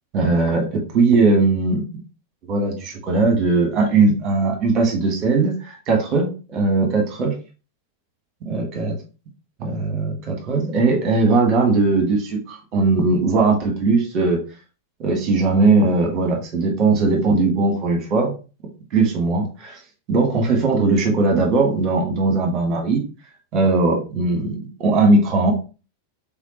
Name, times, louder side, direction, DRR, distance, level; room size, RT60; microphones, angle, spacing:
voice 1, 0.1-1.8 2.5-7.3 8.4-8.9 9.6-14.4 15.0-18.3 18.9-19.8 20.1-23.0 23.5-25.5, right 3 dB, 35° right, 2 dB, 1.4 m, -19 dB
4.1 x 3.7 x 3.0 m, 0.33 s
figure-of-eight pair, 90°, 0 cm